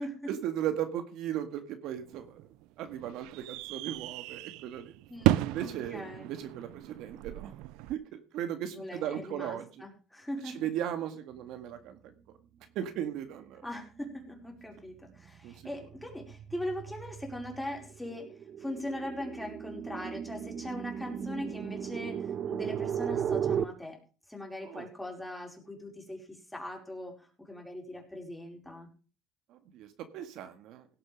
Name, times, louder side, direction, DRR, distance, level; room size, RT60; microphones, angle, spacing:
voice 1, 0.3-2.4 2.8-4.9 5.4-7.5 7.9-9.8 10.4-12.1 12.8-13.7 15.4-15.5 24.6-24.9 29.5-30.9, right 10 dB, 75° right, 8 dB, 1.9 m, -37 dB
sound 1, 1.9-7.9, right 16 dB, 90° right, 0.5 m, -34 dB
voice 2, 5.1-6.3 8.7-10.7 13.6-18.3 18.6-24.0 24.3-28.9, left 1 dB, 5° left, 1 dB, 4.8 m, -40 dB
sound 2, 14.0-14.3 14.7-23.6, right 8 dB, 45° right, 0.7 m, -36 dB
17.0 x 7.8 x 5.3 m, 0.37 s
cardioid pair, 115°, 0 cm